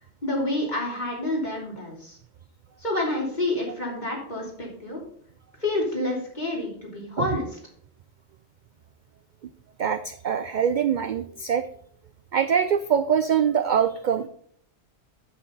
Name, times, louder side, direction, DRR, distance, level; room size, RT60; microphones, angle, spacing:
voice 1, 0.2-2.2 2.8-5.0 5.6-7.5, left 2 dB, 35° left, -3 dB, 3.3 m, -28 dB
voice 2, 9.8-11.6 12.3-14.3, right 8 dB, 60° right, 11 dB, 0.5 m, -23 dB
8.5 x 7.6 x 3.9 m, 0.62 s
omnidirectional pair, 1.2 m